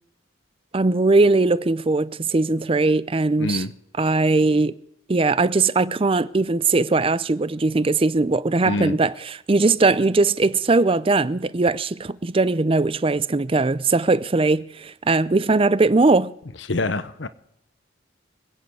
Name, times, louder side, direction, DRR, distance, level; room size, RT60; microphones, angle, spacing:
voice 1, 0.7-3.6 4.0-4.7 5.1-16.3, right 3 dB, 30° right, 0.5 m, -20 dB
voice 2, 3.4-3.7 8.6-9.0 16.7-17.3, left 2 dB, 65° left, 1.0 m, -25 dB
26.5 x 9.4 x 4.8 m
head